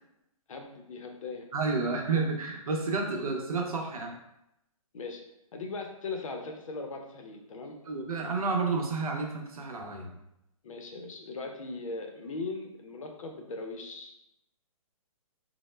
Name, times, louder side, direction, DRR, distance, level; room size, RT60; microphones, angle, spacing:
voice 1, 0.5-1.5 4.9-5.2 5.5-7.8 10.6-14.2, left 3 dB, 65° left, 3 dB, 0.5 m, -39 dB
voice 2, 1.5-4.1 7.9-10.2, right 4 dB, 80° right, 1 dB, 0.6 m, -30 dB
2.0 x 2.0 x 3.1 m, 0.84 s
hypercardioid pair, 165°, 18 cm